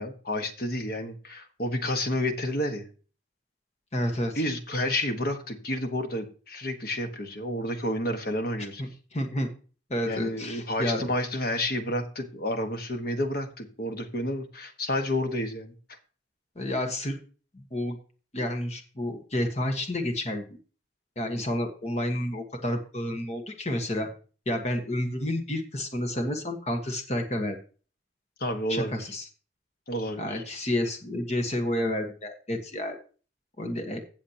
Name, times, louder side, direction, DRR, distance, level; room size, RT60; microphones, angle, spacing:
voice 1, 0.0-2.9 4.3-8.8 10.1-15.7 28.4-29.0 29.9-30.4, left 1 dB, 50° left, 6 dB, 1.4 m, -30 dB
voice 2, 3.9-4.4 8.6-9.5 9.9-11.0 16.5-17.2 17.5-18.0 18.3-20.4 21.2-24.1 24.5-27.6 28.7-29.3 30.2-33.0 33.6-34.0, left 1 dB, 35° left, 4 dB, 1.3 m, -30 dB
16.0 x 7.2 x 2.9 m, 0.38 s
head